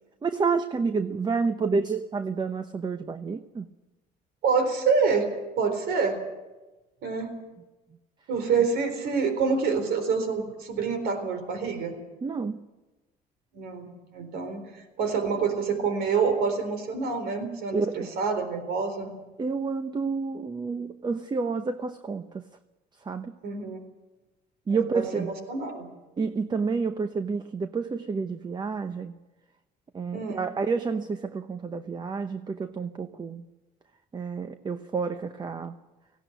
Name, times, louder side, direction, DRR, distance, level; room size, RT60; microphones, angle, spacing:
voice 1, 0.2-3.7 12.2-12.6 17.7-18.1 19.4-22.5 23.1-23.3 24.7-25.3 26.2-29.1 29.9-33.4 34.1-35.8, right 4 dB, 25° right, 0.9 m, -29 dB
voice 2, 4.4-5.3 5.6-6.2 7.0-7.3 8.3-12.0 13.5-19.1 23.4-23.8 24.7-25.9 30.1-30.4, right 5 dB, 75° right, 4.1 m, -27 dB
18.0 x 16.5 x 9.3 m
cardioid pair, 110°, 17 cm